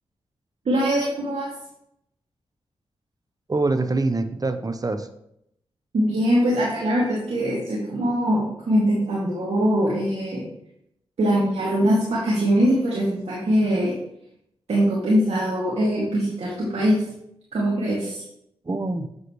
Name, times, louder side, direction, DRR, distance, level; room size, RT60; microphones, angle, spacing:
voice 1, 0.6-1.5 5.9-10.4 11.2-13.9 14.7-17.0 17.5-18.2, equal, 70° right, -7 dB, 2.3 m, -22 dB
voice 2, 3.5-5.1 18.6-19.1, right 3 dB, 35° right, 9 dB, 0.9 m, -24 dB
8.0 x 7.7 x 3.2 m, 0.77 s
cardioid pair, 45°, 11 cm